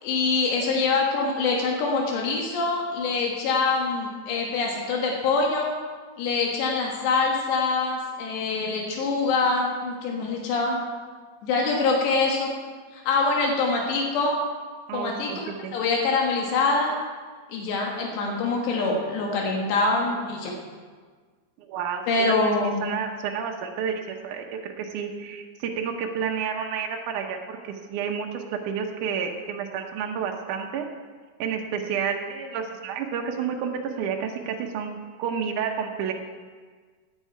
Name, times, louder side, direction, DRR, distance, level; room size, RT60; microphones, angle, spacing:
voice 1, 0.0-5.8 6.2-10.8 11.4-12.5 12.9-14.4 14.9-15.3 15.7-17.0 17.5-20.5 22.1-23.0, left 3 dB, 80° left, -1 dB, 3.7 m, -24 dB
voice 2, 14.9-15.7 21.6-22.4 22.8-30.9 31.4-36.1, right 7 dB, 85° right, 2 dB, 1.7 m, -30 dB
17.0 x 9.1 x 4.6 m, 1.5 s
omnidirectional pair, 4.9 m